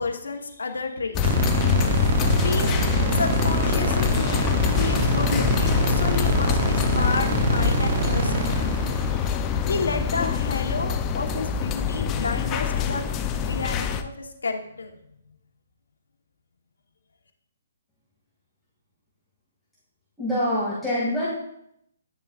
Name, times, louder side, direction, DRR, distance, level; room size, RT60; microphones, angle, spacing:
voice 1, 0.0-1.3 2.4-2.7 3.1-8.5 9.6-13.0 13.4-14.9, left 4 dB, 85° left, 4 dB, 1.1 m, -31 dB
sound 1, 1.1-14.0, left 7 dB, 20° left, 0.5 m, -24 dB
sound 2, 1.2-10.4, right 5 dB, 55° right, 0.9 m, -27 dB
voice 2, 20.2-21.3, left 1 dB, ahead, -12 dB, 2.3 m, -25 dB
10.5 x 6.6 x 2.5 m, 0.74 s
hypercardioid pair, 150°, 0 cm